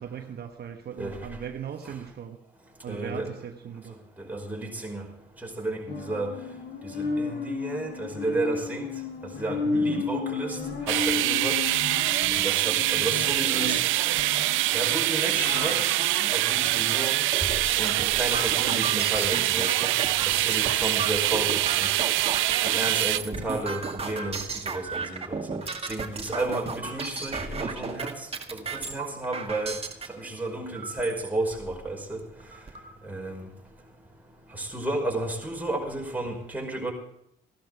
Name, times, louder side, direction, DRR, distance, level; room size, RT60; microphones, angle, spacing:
voice 1, 0.0-2.4 2.8-4.0 9.6-10.1, right 8 dB, 55° right, 5 dB, 1.3 m, -38 dB
voice 2, 2.9-3.3 4.2-5.1 5.4-6.3 6.8-8.9 9.4-10.6 10.9-11.6 12.4-13.8 14.7-17.2 17.8-19.9 20.3-21.9 22.6-25.6 25.9-29.8 30.1-32.2 33.0-33.5 34.5-36.9, right 2 dB, 10° right, -1 dB, 5.3 m, -32 dB
sound 1, 5.9-17.3 17.8-17.9, left 4 dB, 60° left, 3.8 m, -33 dB
sound 2, 10.9-23.2, right 16 dB, 75° right, 0.6 m, -25 dB
sound 3, 17.2-30.1 30.7-31.3 31.8-31.9 32.2-32.9, right 4 dB, 30° right, 2.0 m, -34 dB
16.0 x 12.0 x 4.9 m, 0.78 s
supercardioid pair, 80°, 20 cm